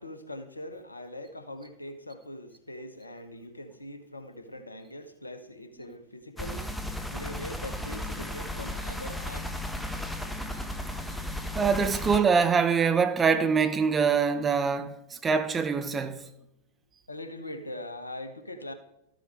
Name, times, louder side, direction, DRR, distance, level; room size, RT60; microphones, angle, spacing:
voice 1, 0.0-9.6 17.1-18.7, left 1 dB, 80° left, 1.1 m, -42 dB
sound 1, 6.4-12.2, left 1 dB, 5° left, 1.2 m, -35 dB
voice 2, 11.5-16.2, right 5 dB, 20° right, 1.0 m, -24 dB
13.0 x 7.6 x 4.8 m
figure-of-eight pair, 90°, 0 cm